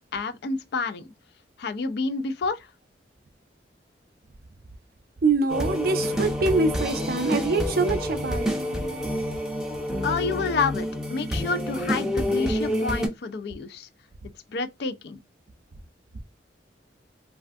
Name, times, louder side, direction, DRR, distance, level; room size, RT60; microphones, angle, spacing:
voice 1, 0.1-1.1 1.6-2.7 10.0-13.9 14.5-15.2, left 4 dB, 65° left, 0.4 m, -29 dB
voice 2, 5.2-8.9, right 3 dB, 55° right, 0.5 m, -25 dB
sound 1, 5.5-13.1, equal, 5° right, 0.5 m, -28 dB
3.3 x 2.3 x 2.5 m
head